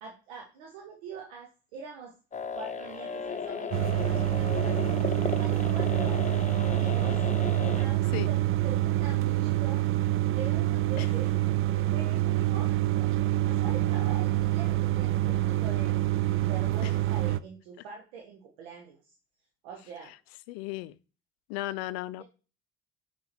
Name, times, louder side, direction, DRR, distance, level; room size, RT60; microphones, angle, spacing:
voice 1, 0.0-2.1 2.5-5.0 5.4-7.2 7.8-9.8 10.3-11.4 11.9-15.9 16.5-19.1 19.6-20.1 21.9-22.2, right 5 dB, 85° right, 1.1 m, -44 dB
sound 1, 2.3-7.8, left 5 dB, 25° left, 0.8 m, -35 dB
sound 2, 3.7-17.4, right 15 dB, 45° right, 0.5 m, -26 dB
voice 2, 20.5-21.0 21.5-22.2, left 17 dB, 80° left, 0.5 m, -35 dB
5.7 x 4.7 x 4.4 m
hypercardioid pair, 60°, 30 cm